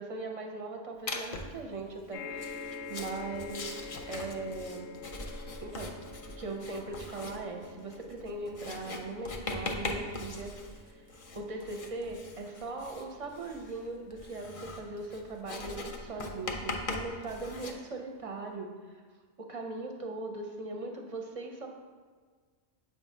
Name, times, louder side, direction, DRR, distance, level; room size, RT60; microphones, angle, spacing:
voice 1, 0.0-4.9 5.6-5.9 6.4-11.1 11.3-19.0 19.4-21.7, right 2 dB, 40° right, 2 dB, 0.6 m, -40 dB
Writing, 1.1-1.6 2.3-17.7, left 2 dB, 45° left, 0.5 m, -41 dB
sound 1, 2.1-16.7 17.4-17.5 17.8-17.9, left 4 dB, 90° left, 0.9 m, -48 dB
7.1 x 2.4 x 5.4 m, 1.5 s
omnidirectional pair, 1.1 m